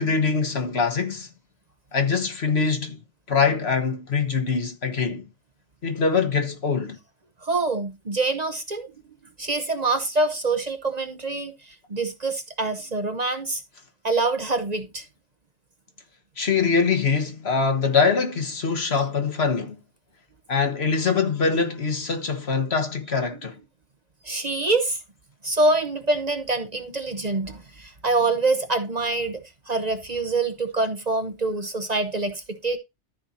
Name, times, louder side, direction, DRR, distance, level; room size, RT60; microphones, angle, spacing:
voice 1, 0.0-1.3 1.9-3.0 3.3-5.3 5.8-7.0 16.4-19.8 20.5-23.6, left 5 dB, 60° left, 1.6 m, -23 dB
voice 2, 7.4-8.9 9.4-13.6 14.0-15.0 24.2-25.0 25.4-29.4 29.7-32.8, right 3 dB, 40° right, 1.0 m, -25 dB
13.5 x 4.4 x 4.2 m
omnidirectional pair, 1.2 m